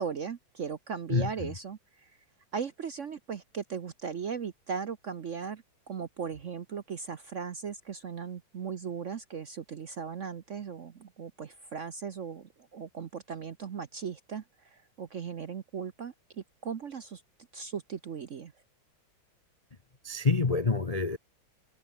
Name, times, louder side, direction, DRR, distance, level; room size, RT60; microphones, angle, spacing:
voice 1, 0.0-2.1 2.5-17.2 17.5-18.5, right 6 dB, 50° right, 1.0 m, -38 dB
voice 2, 1.1-1.5 20.0-21.2, left 4 dB, 30° left, 0.7 m, -27 dB
omnidirectional pair, 2.2 m